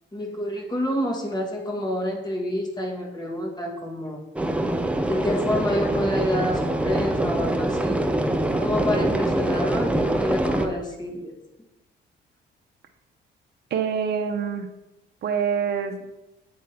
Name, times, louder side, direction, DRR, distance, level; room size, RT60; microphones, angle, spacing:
voice 1, 0.1-4.2 5.0-8.1 8.6-11.3, equal, 20° left, 0 dB, 1.6 m, -28 dB
sound 1, 4.4-10.7, right 1 dB, 5° right, 0.5 m, -24 dB
voice 2, 13.7-14.7 15.2-16.1, right 7 dB, 55° right, 5 dB, 0.7 m, -25 dB
8.6 x 3.6 x 4.3 m, 0.98 s
cardioid pair, 90°, 20 cm